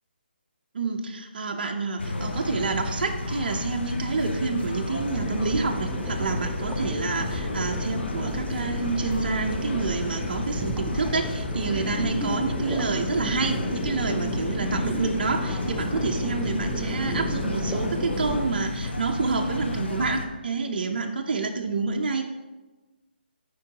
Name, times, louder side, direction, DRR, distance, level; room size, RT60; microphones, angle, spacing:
voice 1, 0.7-22.2, right 4 dB, 55° right, 3 dB, 0.6 m, -28 dB
sound 1, 2.0-20.3, left 2 dB, 80° left, 0.9 m, -32 dB
sound 2, 5.0-18.4, equal, ahead, 0.4 m, -34 dB
8.5 x 4.6 x 2.9 m, 1.2 s
hypercardioid pair, 155°, 6 cm